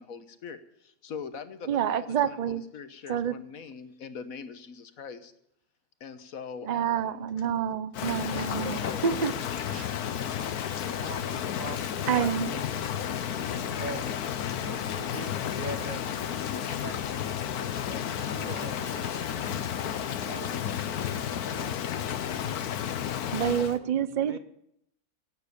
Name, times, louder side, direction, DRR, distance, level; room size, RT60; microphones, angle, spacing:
voice 1, 0.0-5.3 6.0-7.3 8.3-10.3 11.6-11.8, left 6 dB, 65° left, 10 dB, 1.5 m, -42 dB
voice 2, 1.7-2.6 3.1-3.3 6.6-9.3 9.7-9.9 12.1-12.5 23.3-24.4, right 9 dB, 80° right, 15 dB, 0.3 m, -28 dB
Rain, 7.9-23.8, left 9 dB, 80° left, 1.4 m, -32 dB
voice 3, 10.8-16.2 16.6-17.4 17.6-19.7 20.1-22.2 23.5-24.4, right 3 dB, 35° right, 8 dB, 1.2 m, -44 dB
Engine / Mechanisms / Drill, 16.2-22.9, right 1 dB, 60° right, 5.0 m, -52 dB
17.0 x 8.9 x 6.7 m, 0.75 s
omnidirectional pair, 1.6 m